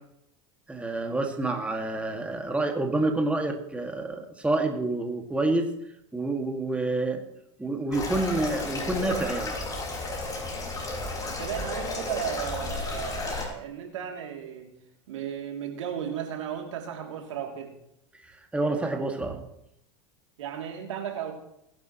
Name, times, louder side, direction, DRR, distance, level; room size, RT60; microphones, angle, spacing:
voice 1, 0.7-5.7 6.1-7.2 7.6-9.5 18.5-19.4, right 2 dB, 10° right, 3 dB, 2.1 m, -28 dB
sound 1, 7.9-13.5, left 2 dB, 25° left, 5.5 m, -33 dB
voice 2, 11.3-14.7 15.1-17.7 20.4-21.3, right 9 dB, 80° right, 2 dB, 2.9 m, -35 dB
22.0 x 11.0 x 3.1 m, 0.78 s
hypercardioid pair, 95°, 16 cm